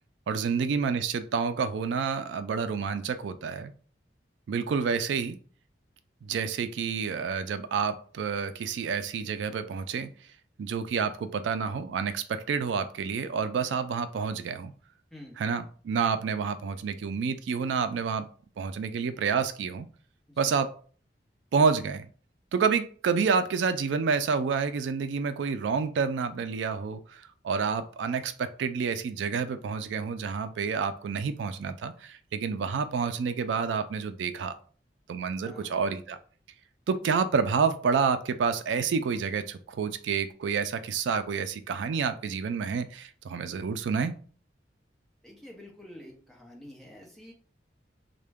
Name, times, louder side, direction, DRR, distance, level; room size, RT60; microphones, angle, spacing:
voice 1, 0.3-3.7 4.5-5.4 6.2-10.1 10.6-14.7 15.4-18.3 18.6-19.9 20.4-20.7 21.5-22.1 22.5-34.5 35.1-36.2 36.9-44.1, right 5 dB, 85° right, 11 dB, 0.3 m, -29 dB
voice 2, 45.2-47.3, left 1 dB, ahead, -1 dB, 0.8 m, -48 dB
3.6 x 2.2 x 3.4 m, 0.43 s
head